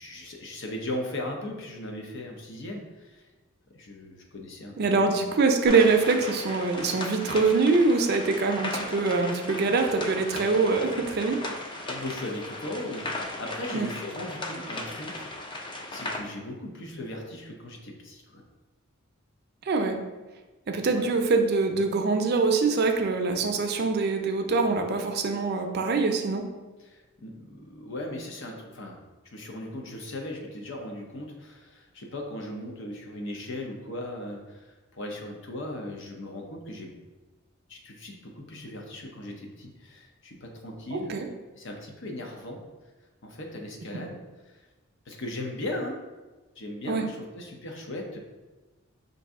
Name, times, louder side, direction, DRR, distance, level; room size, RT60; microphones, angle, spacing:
voice 1, 0.0-3.2 3.7-5.1 9.6-9.7 11.8-15.3 15.6-18.4 20.9-21.1 26.8-29.0 29.3-36.9 37.7-41.1 41.5-42.6 43.2-44.2 44.5-44.6 45.1-46.0 46.6-48.2, left 1 dB, 60° left, 1 dB, 0.8 m, -38 dB
voice 2, 4.8-11.4 13.7-13.9 19.7-20.0 20.7-26.4 40.9-41.3 46.9-47.1, right 4 dB, 50° right, 4 dB, 0.5 m, -24 dB
sound 1, 5.6-16.2, left 2 dB, 25° left, 0.4 m, -37 dB
5.4 x 2.6 x 3.5 m, 1.2 s
head